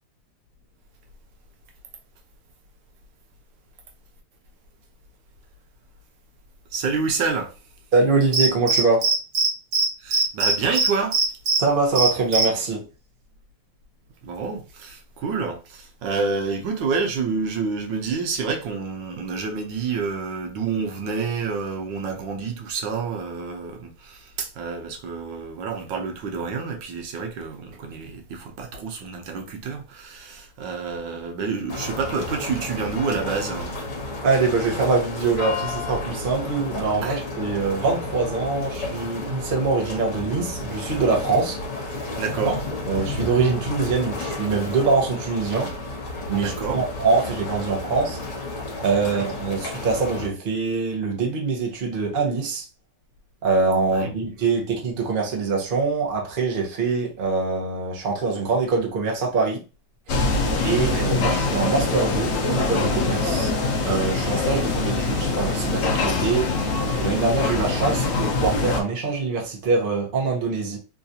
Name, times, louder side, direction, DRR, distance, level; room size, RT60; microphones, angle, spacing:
voice 1, 6.7-7.5 10.0-11.2 14.2-33.7 37.0-37.2 42.1-42.7 46.3-46.8 49.0-49.3 53.9-54.1 60.9-61.1, right 5 dB, 90° right, 1.5 m, -28 dB
voice 2, 7.9-9.1 11.6-12.8 34.2-41.6 42.9-45.7 46.3-48.2 48.8-52.7 53.4-59.6 60.6-63.5 63.8-66.5 67.0-70.8, right 4 dB, 40° right, 0.8 m, -23 dB
Cricket, 8.3-9.5 9.7-9.9 10.1-11.6 12.0-12.4, right 3 dB, 65° right, 1.5 m, -20 dB
sound 1, 31.7-50.3, left 2 dB, 50° left, 1.4 m, -32 dB
sound 2, 60.1-68.8, left 3 dB, 70° left, 0.6 m, -24 dB
3.7 x 2.4 x 2.7 m
omnidirectional pair, 2.0 m